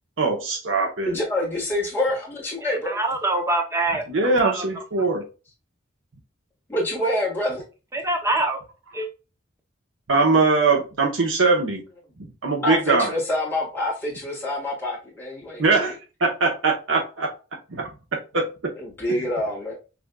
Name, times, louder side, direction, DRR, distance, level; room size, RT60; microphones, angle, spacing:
voice 1, 0.2-1.1 4.1-5.2 10.1-11.8 12.4-13.1 15.6-15.9 16.2-17.4 17.7-17.9 18.3-18.7 19.1-19.2, right 3 dB, 75° right, 0 dB, 1.0 m, -21 dB
voice 2, 1.0-3.0 6.7-7.6 12.6-15.9 18.8-19.7, left 1 dB, 10° left, -4 dB, 1.6 m, -26 dB
voice 3, 2.6-4.0 4.4-4.6 7.9-8.6 8.9-9.1, right 2 dB, 15° right, 4 dB, 0.7 m, -24 dB
6.0 x 2.7 x 2.2 m, 0.32 s
head